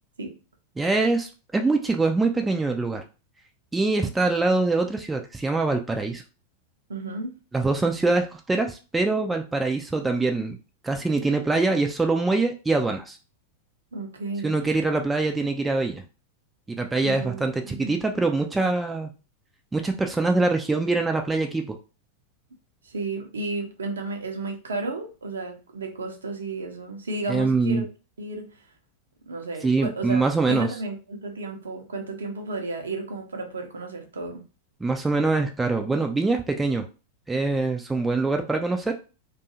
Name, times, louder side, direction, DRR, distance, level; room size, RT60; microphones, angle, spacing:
voice 1, 0.8-3.0 3.7-6.2 7.5-10.6 10.8-13.2 14.4-16.0 16.8-19.1 19.7-21.8 27.3-27.8 29.6-30.7 34.8-36.8 37.3-38.9, right 3 dB, 10° right, 0.3 m, -24 dB
voice 2, 6.9-7.4 13.9-14.6 17.0-17.9 22.8-27.9 28.2-28.6 29.3-34.4, right 2 dB, 70° right, 0.6 m, -33 dB
2.6 x 2.4 x 2.7 m
figure-of-eight pair, 90°, 0 cm